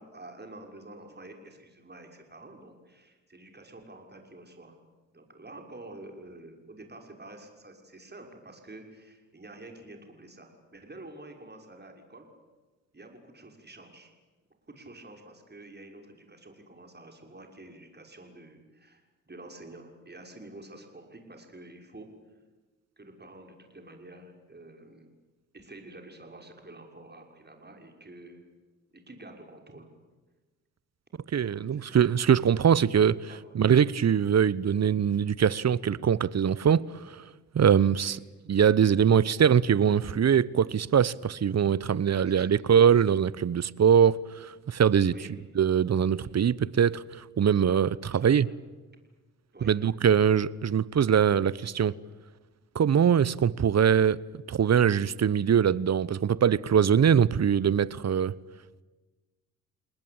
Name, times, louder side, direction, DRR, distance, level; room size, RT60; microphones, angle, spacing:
voice 1, 0.0-4.8 5.1-12.3 12.9-14.1 14.7-22.1 23.0-25.1 25.5-28.4 28.9-29.9 31.7-32.0 33.3-33.4 38.0-38.2 42.1-42.6 45.0-45.3 48.0-48.4 49.5-49.7, right 2 dB, 25° right, 6.3 m, -48 dB
voice 2, 31.3-33.2 33.5-37.2 37.5-38.2 38.5-45.1 45.5-48.5 49.6-51.9 52.7-54.2 54.5-58.3, right 8 dB, 40° right, 1.0 m, -22 dB
29.5 x 19.5 x 8.9 m
hypercardioid pair, 45°, 40 cm